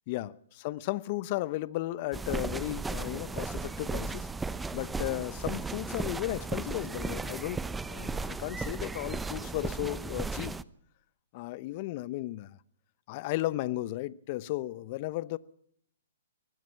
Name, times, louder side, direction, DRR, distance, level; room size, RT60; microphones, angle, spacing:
voice 1, 0.1-4.3 4.7-10.6 11.3-12.6 13.1-15.4, left 17 dB, 40° left, 0.9 m, -35 dB
sound 1, 2.1-10.6, right 3 dB, 10° right, 0.8 m, -35 dB
23.5 x 19.0 x 5.8 m
hypercardioid pair, 135°, 0 cm